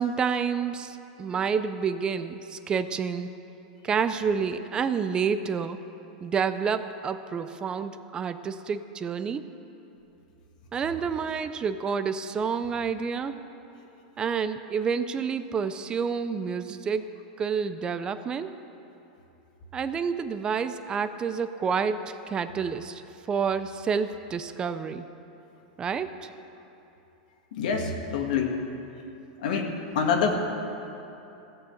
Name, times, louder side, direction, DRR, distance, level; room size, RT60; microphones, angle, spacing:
voice 1, 0.0-3.3 3.8-5.8 6.2-9.4 10.7-13.4 14.2-18.6 19.7-23.0 23.3-25.1 25.8-26.3, right 6 dB, 20° right, 11 dB, 0.4 m, -29 dB
voice 2, 27.5-28.5 29.4-29.7 30.0-30.3, left 6 dB, 75° left, 3 dB, 1.9 m, -26 dB
16.5 x 6.8 x 7.8 m, 2.9 s
supercardioid pair, 145°, 4 cm